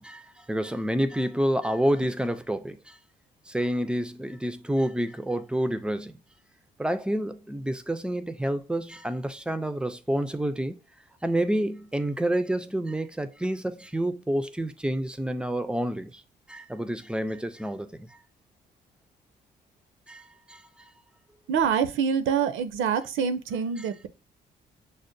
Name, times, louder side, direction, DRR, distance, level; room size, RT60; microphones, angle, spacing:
voice 1, 0.0-3.0 3.5-6.2 6.8-10.8 11.2-16.2 16.5-18.2 20.1-20.9 23.8-23.9, right 1 dB, 5° right, 0.4 m, -29 dB
voice 2, 21.5-24.1, right 7 dB, 80° right, 0.5 m, -26 dB
6.3 x 2.1 x 2.6 m
cardioid pair, 90°, 20 cm